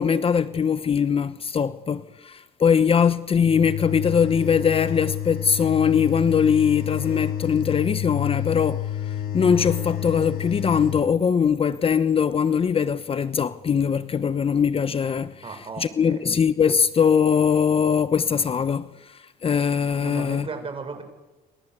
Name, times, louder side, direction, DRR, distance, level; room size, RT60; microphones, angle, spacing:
voice 1, 0.0-8.9 9.3-15.4 15.8-20.5, left 7 dB, 35° left, 1.0 m, -21 dB
sound 1, 3.4-11.0, left 11 dB, 65° left, 5.2 m, -29 dB
voice 2, 15.4-16.3 20.0-21.0, right 4 dB, 30° right, 7.1 m, -35 dB
28.0 x 25.5 x 8.2 m
cardioid pair, 110°, 17 cm